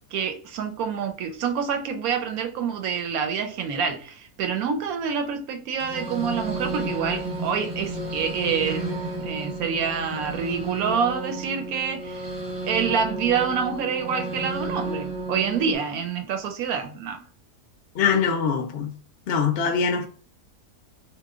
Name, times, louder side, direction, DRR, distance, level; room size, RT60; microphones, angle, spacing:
voice 1, 0.1-8.8 9.2-12.3 12.6-17.2, right 6 dB, 75° right, 1.0 m, -27 dB
sound 1, 5.8-15.7, right 2 dB, 40° right, 0.7 m, -32 dB
voice 2, 17.9-18.9 19.3-20.1, left 6 dB, 60° left, 0.6 m, -23 dB
2.9 x 2.2 x 3.5 m
omnidirectional pair, 1.7 m